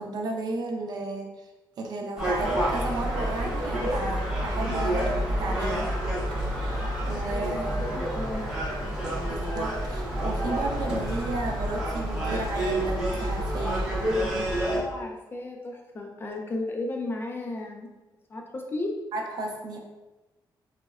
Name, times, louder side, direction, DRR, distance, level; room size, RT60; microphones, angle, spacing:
voice 1, 0.0-1.3 1.8-6.0 6.3-8.0 9.3-13.9 19.1-19.8, right 2 dB, 60° right, 1 dB, 0.4 m, -33 dB
Gull seagull, 2.2-14.8, right 1 dB, 10° right, 0.6 m, -28 dB
voice 2, 7.1-8.5 14.7-17.9 18.3-18.9, left 2 dB, 30° left, 1 dB, 0.3 m, -34 dB
3.7 x 2.0 x 2.3 m, 1.1 s
cardioid pair, 150°, 8 cm